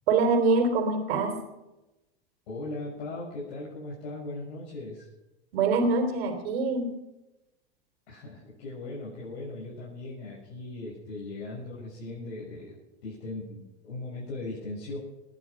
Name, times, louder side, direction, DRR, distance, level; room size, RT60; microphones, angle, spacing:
voice 1, 0.1-1.4 5.5-6.9, right 3 dB, 70° right, 6 dB, 3.3 m, -24 dB
voice 2, 2.5-5.1 8.1-12.8 13.0-15.0, left 2 dB, 80° left, -7 dB, 6.9 m, -38 dB
19.0 x 11.0 x 6.3 m, 1.0 s
hypercardioid pair, 95°, 31 cm